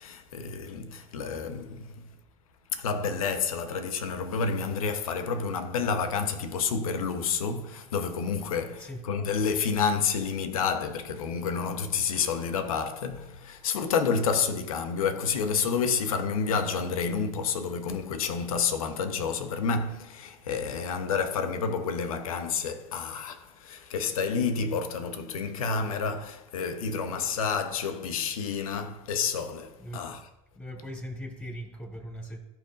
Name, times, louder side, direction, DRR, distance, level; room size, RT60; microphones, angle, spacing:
voice 1, 0.0-2.1 2.7-30.3, left 5 dB, 85° left, 1.0 m, -29 dB
voice 2, 29.8-30.1 30.5-32.4, equal, 10° left, 3.5 m, -39 dB
17.5 x 6.0 x 2.6 m
hypercardioid pair, 80°, 18 cm